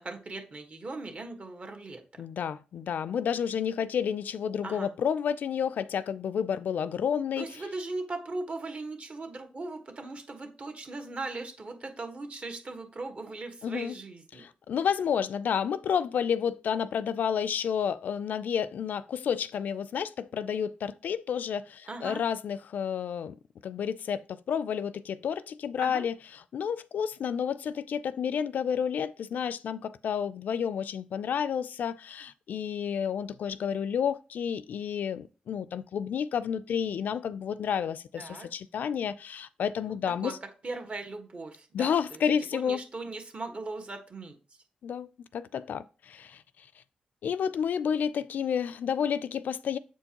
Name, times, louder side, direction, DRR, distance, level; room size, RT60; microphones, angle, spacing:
voice 1, 0.0-2.0 4.6-4.9 7.4-14.4 21.9-22.2 25.8-26.1 38.2-38.5 39.8-40.0 40.2-40.3 40.6-42.2 42.5-44.4, right 3 dB, 45° right, 1.4 m, -39 dB
voice 2, 2.2-7.5 13.6-14.0 14.3-23.3 23.6-40.4 41.7-42.8 44.8-46.4 47.2-49.8, left 8 dB, 75° left, 0.3 m, -30 dB
7.4 x 4.4 x 2.9 m
cardioid pair, 70°, 3 cm